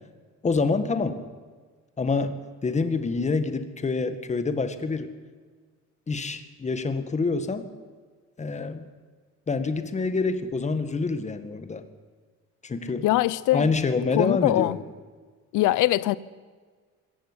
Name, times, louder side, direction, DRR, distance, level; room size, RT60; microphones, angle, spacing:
voice 1, 0.4-1.2 2.0-5.1 6.1-7.7 8.4-8.8 9.5-11.8 12.6-13.1 13.5-14.8, left 4 dB, 20° left, 1.9 m, -26 dB
voice 2, 13.0-13.7 14.1-14.8 15.5-16.2, left 16 dB, 80° left, 1.0 m, -22 dB
25.0 x 15.0 x 9.9 m
cardioid pair, 135°, 31 cm